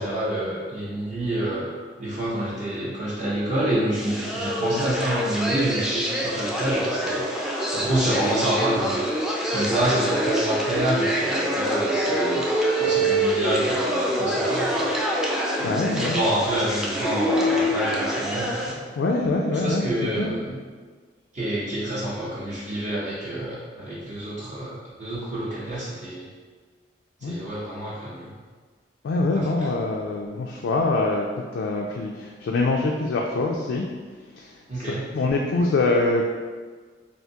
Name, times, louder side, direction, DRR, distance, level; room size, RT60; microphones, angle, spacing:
voice 1, 0.0-1.7 2.0-7.2 7.7-9.1 9.5-12.5 12.8-14.9 15.6-18.8 19.5-20.6 21.3-26.3 27.2-28.3 34.7-35.0, right 1 dB, 45° right, -9 dB, 0.7 m, -27 dB
sound 1, 3.9-18.7, right 1 dB, 5° right, 0.4 m, -25 dB
voice 2, 15.6-16.2 19.0-20.3 27.2-27.4 29.0-31.3 31.5-33.9 34.3-36.2, left 3 dB, 75° left, 0 dB, 0.3 m, -24 dB
3.5 x 2.5 x 2.8 m, 1.5 s
head